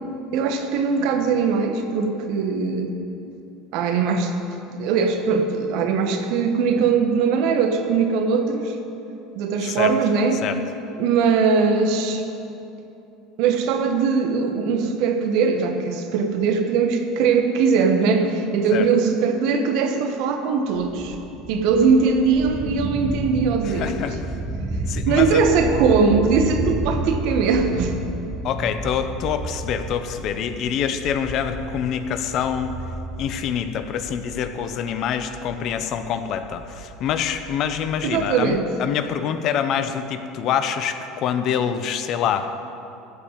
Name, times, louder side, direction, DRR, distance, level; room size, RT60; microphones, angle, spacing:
voice 1, 0.3-2.9 3.7-4.3 4.8-8.8 9.3-10.4 11.0-12.2 13.4-21.2 21.5-24.0 25.1-28.0 38.0-38.7, right 5 dB, 65° right, 5 dB, 1.3 m, -20 dB
voice 2, 9.6-9.9 10.4-10.6 18.7-18.9 23.6-24.2 24.9-25.4 28.4-32.8 33.2-42.5, left 8 dB, 55° left, 9 dB, 0.8 m, -26 dB
sound 1, 20.7-38.6, right 2 dB, 25° right, 1.3 m, -32 dB
14.0 x 5.2 x 8.8 m, 2.8 s
hypercardioid pair, 90°, 0 cm